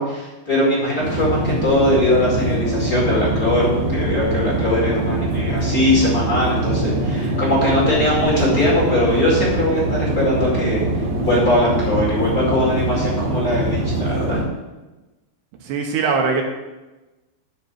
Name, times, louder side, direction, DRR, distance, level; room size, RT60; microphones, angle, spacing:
voice 1, 0.0-10.8 11.2-14.4, left 1 dB, 35° left, -4 dB, 1.6 m, -20 dB
sound 1, 1.0-14.4, right 2 dB, 55° right, 2.0 m, -23 dB
voice 2, 15.6-16.4, right 5 dB, 70° right, 2 dB, 2.8 m, -21 dB
12.0 x 4.4 x 7.4 m, 1.1 s
omnidirectional pair, 5.4 m